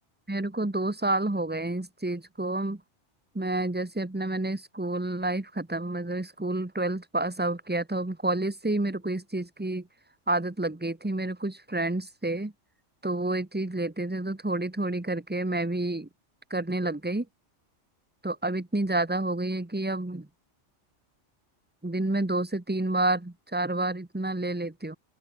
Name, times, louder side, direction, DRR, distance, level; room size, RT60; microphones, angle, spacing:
voice 1, 0.3-2.8 3.3-9.9 10.3-12.5 13.0-16.1 16.5-17.3 18.2-20.3 21.8-25.0, right 2 dB, 10° right, 1.0 m, -29 dB
open air
omnidirectional pair, 1.3 m